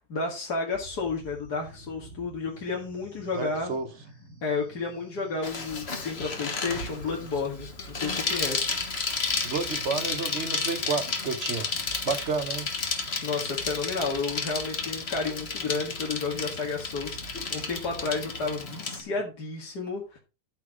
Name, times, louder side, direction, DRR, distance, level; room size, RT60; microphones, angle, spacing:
voice 1, 0.1-3.8 4.4-8.7 13.2-20.2, left 4 dB, 85° left, 2.5 m, -32 dB
sound 1, 0.7-19.3, right 1 dB, 60° left, 6.2 m, -49 dB
voice 2, 3.3-3.9 9.4-11.7 12.0-12.7, right 4 dB, 50° right, 1.2 m, -30 dB
Bicycle, 5.4-19.0, left 4 dB, 40° left, 1.6 m, -32 dB
13.0 x 4.7 x 5.0 m
omnidirectional pair, 1.7 m